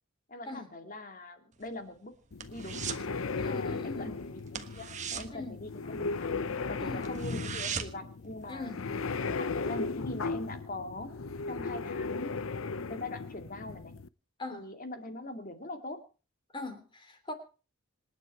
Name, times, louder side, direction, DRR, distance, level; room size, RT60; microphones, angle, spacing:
voice 1, 0.3-2.2 2.5-2.8 3.1-11.1 11.5-12.4 12.9-14.0 14.5-16.0, left 2 dB, 40° left, 7 dB, 2.3 m, -42 dB
sound 1, 1.5-3.1 3.4-3.7 4.0-4.1 4.5-6.3 6.7-6.8 7.0-8.1 8.5-8.6, right 7 dB, 35° right, 1.4 m, -39 dB
sound 2, 2.3-14.1, left 4 dB, 70° left, 0.7 m, -36 dB
voice 2, 3.4-4.1 5.3-5.6 6.8-7.1 8.5-8.8 14.4-14.6 16.5-17.3, left 2 dB, 20° left, 7 dB, 3.2 m, -41 dB
27.0 x 9.6 x 4.6 m, 0.36 s
head